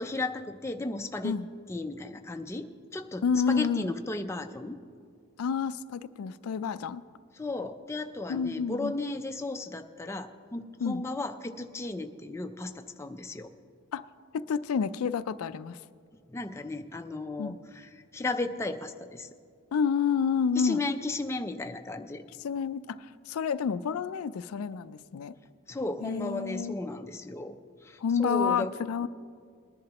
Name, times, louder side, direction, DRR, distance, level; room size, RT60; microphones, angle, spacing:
voice 1, 0.0-1.4 1.7-4.8 7.4-13.5 16.3-19.3 20.6-22.2 25.7-28.7 29.0-29.1, left 2 dB, 10° left, 6 dB, 0.4 m, -35 dB
voice 2, 3.2-3.9 5.4-7.0 8.3-8.9 10.8-11.0 13.9-14.0 14.3-15.8 17.4-17.6 19.7-20.8 22.4-25.3 26.0-26.8 28.0-29.1, left 6 dB, 80° left, 14 dB, 0.4 m, -29 dB
20.5 x 10.5 x 2.9 m, 2.2 s
head